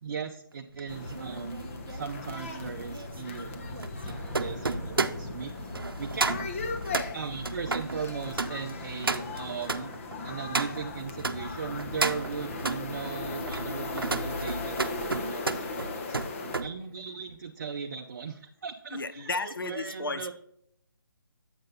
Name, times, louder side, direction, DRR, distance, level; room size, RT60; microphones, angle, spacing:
voice 1, 0.0-1.6 1.9-3.6 4.0-6.6 7.1-9.9 10.2-16.2 16.6-20.3, right 6 dB, 50° right, 3 dB, 0.6 m, -38 dB
sound 1, 0.7-11.4 11.8-12.8 13.3-16.7 17.0-17.4, right 3 dB, 90° right, 0.6 m, -33 dB
sound 2, 0.9-16.6, left 3 dB, 40° left, 0.9 m, -37 dB
Explosion, 4.1-7.0, right 1 dB, ahead, 1.3 m, -50 dB
voice 2, 18.9-20.4, left 3 dB, 75° left, 13 dB, 0.6 m, -34 dB
8.0 x 5.2 x 4.0 m, 0.72 s
figure-of-eight pair, 155°, 12 cm